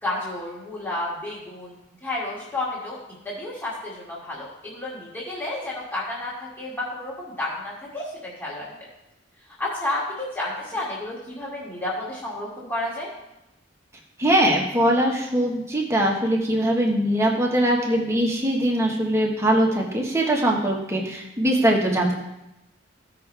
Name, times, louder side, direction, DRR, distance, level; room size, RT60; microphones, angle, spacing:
voice 1, 0.0-1.8 2.0-3.0 3.2-8.7 9.6-13.1, left 2 dB, 10° left, -8 dB, 2.2 m, -31 dB
voice 2, 14.2-22.1, right 1 dB, 15° right, -1 dB, 1.4 m, -21 dB
15.0 x 5.8 x 3.4 m, 0.90 s
head